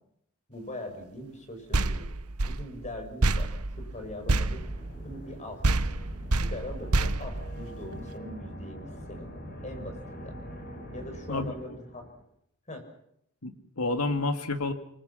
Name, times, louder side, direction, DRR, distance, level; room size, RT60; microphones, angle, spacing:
voice 1, 0.5-2.1 2.4-3.5 3.8-4.6 5.0-5.6 6.3-9.3 9.6-10.4 10.9-12.1 12.7-12.8, left 1 dB, 35° left, 6 dB, 6.7 m, -41 dB
sound 1, 1.7-5.4 5.6-8.1, right 2 dB, 80° right, 1.2 m, -28 dB
sound 2, 3.7-12.2, equal, 50° left, 7.6 m, -44 dB
voice 2, 11.3-11.8 13.4-14.7, left 2 dB, 80° left, 8 dB, 2.7 m, -30 dB
28.5 x 24.5 x 5.8 m, 0.72 s
head